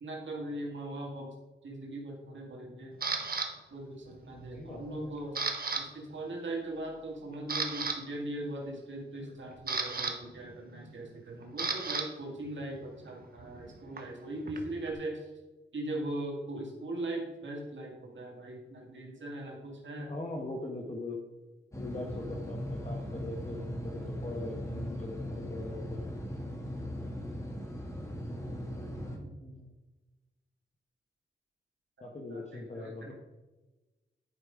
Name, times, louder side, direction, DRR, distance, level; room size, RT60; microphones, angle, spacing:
voice 1, 0.0-1.3 1.6-2.9 3.7-5.4 5.8-15.3 15.7-20.1 22.3-22.4 32.3-33.1, right 1 dB, 75° right, 0 dB, 2.0 m, -40 dB
Camera, 3.0-3.5 4.1-4.4 4.7-5.8 6.1-6.3 6.8-6.9 7.3-8.0 9.2-12.0 12.3-14.9, right 4 dB, 50° right, 1.2 m, -35 dB
voice 2, 4.3-5.1 20.0-21.2 21.7-26.0 29.1-29.7 32.0-33.1, left 2 dB, 35° left, -1 dB, 1.3 m, -41 dB
sound 1, 21.7-29.2, equal, 15° left, 1.8 m, -38 dB
11.0 x 5.3 x 5.0 m, 1.1 s
wide cardioid pair, 85°, 19 cm